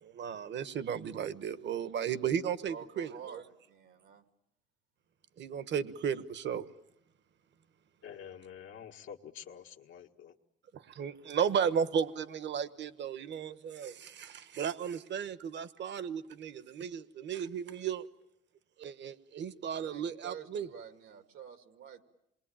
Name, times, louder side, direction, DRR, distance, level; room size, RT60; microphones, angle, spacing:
voice 1, 0.0-3.4 5.4-6.7 11.0-18.1 18.8-20.7, right 7 dB, 65° right, 1.2 m, -34 dB
voice 2, 2.7-3.4 3.7-4.2 19.7-22.0, right 7 dB, 90° right, 2.3 m, -48 dB
voice 3, 8.0-10.4, left 8 dB, 90° left, 1.7 m, -48 dB
27.5 x 22.0 x 8.9 m
cardioid pair, 90°, 20 cm